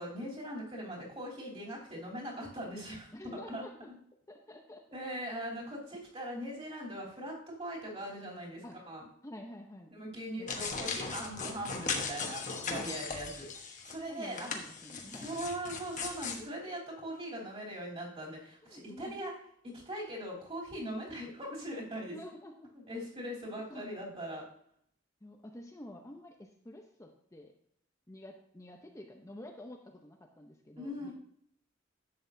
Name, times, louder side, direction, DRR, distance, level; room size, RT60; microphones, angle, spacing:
voice 1, 0.0-3.1 3.5-3.6 4.9-9.0 9.9-13.5 13.8-14.6 14.9-19.3 19.6-22.2 22.7-24.4 30.8-31.1, equal, 30° right, -4 dB, 3.0 m, -41 dB
voice 2, 3.1-3.9 4.3-4.8 8.6-8.8 9.2-9.9 10.4-11.0 12.7-13.0 14.1-15.4 18.6-19.2 21.9-22.7 23.7-24.2 25.2-27.5 28.1-31.1, left 1 dB, 15° left, 2 dB, 0.7 m, -49 dB
sound 1, 10.5-14.0 14.3-16.4, left 5 dB, 40° left, 1.1 m, -38 dB
11.0 x 7.8 x 2.7 m, 0.67 s
head